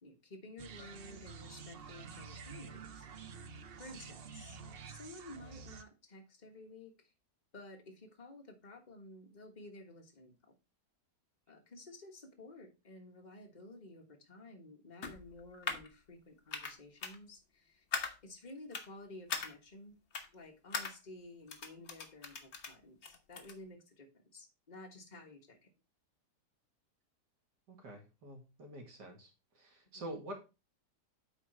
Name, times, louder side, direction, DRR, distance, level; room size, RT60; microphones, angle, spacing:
voice 1, 0.0-3.1 3.8-7.1 7.5-10.3 11.5-17.8 18.2-20.0 20.3-25.7 29.9-30.0, left 2 dB, 25° left, 3 dB, 1.5 m, -53 dB
sound 1, 0.6-5.8, right 5 dB, 60° right, 0.6 m, -49 dB
sound 2, 15.0-15.9 16.5-16.8 17.0-17.2 17.9-18.1 18.7-18.9 19.3-19.5 20.1-20.3 20.7-20.9 21.5-22.7 23.0-23.5, left 5 dB, 45° left, 1.2 m, -39 dB
voice 2, 27.7-29.3 29.5-30.3, right 1 dB, 80° right, 1 dB, 2.7 m, -47 dB
8.9 x 4.1 x 4.4 m, 0.29 s
omnidirectional pair, 1.8 m